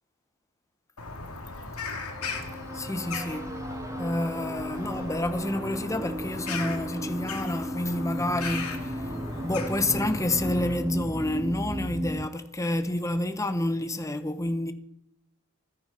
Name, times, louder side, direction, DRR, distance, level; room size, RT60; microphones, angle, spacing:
Bird vocalization bird call bird song, 1.0-10.8, left 3 dB, 85° left, 2.6 m, -38 dB
sound 1, 2.0-12.3, right 1 dB, 15° right, 0.5 m, -35 dB
voice 1, 2.7-3.5 4.0-9.1 9.4-14.7, left 1 dB, 15° left, 0.9 m, -29 dB
28.5 x 10.0 x 4.4 m
head